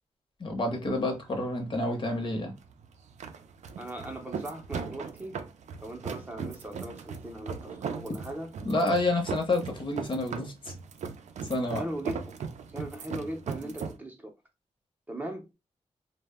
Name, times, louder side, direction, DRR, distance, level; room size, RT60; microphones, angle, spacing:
voice 1, 0.4-2.5 8.6-10.7 11.5-11.8, left 2 dB, 45° left, 0.7 m, -29 dB
sound 1, 0.6-14.0, right 6 dB, 75° right, 0.4 m, -39 dB
voice 2, 3.8-5.4 5.8-8.5 11.6-12.4 12.7-14.3 15.1-15.5, right 1 dB, 15° right, 0.5 m, -39 dB
2.0 x 2.0 x 3.4 m
wide cardioid pair, 130°, 12 cm